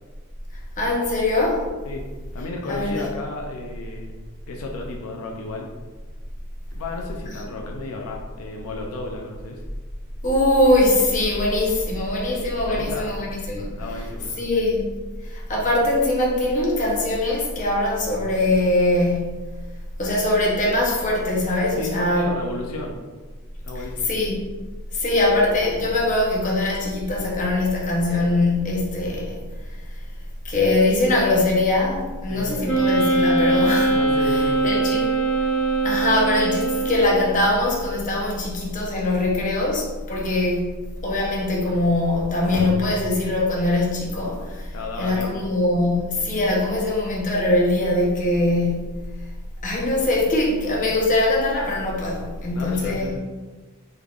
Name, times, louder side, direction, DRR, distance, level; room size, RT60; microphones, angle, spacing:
voice 1, 0.8-1.6 2.7-3.0 10.2-13.7 14.4-14.9 15.5-19.4 20.0-22.3 24.1-24.5 25.0-29.4 30.4-34.0 34.3-35.0 35.8-40.8 41.0-44.4 45.0-49.0 49.6-53.1, left 2 dB, 35° left, -3 dB, 0.8 m, -22 dB
voice 2, 2.3-4.1 4.5-5.7 6.7-9.6 12.7-13.2 13.7-14.5 21.8-23.0 23.6-24.1 32.3-32.9 33.9-35.0 44.7-45.4 52.5-53.2, left 2 dB, 85° left, 0 dB, 0.5 m, -33 dB
Wind instrument woodwind instrument, 32.6-37.3, right 2 dB, 5° left, 1.0 m, -21 dB
3.6 x 3.4 x 2.3 m, 1.3 s
head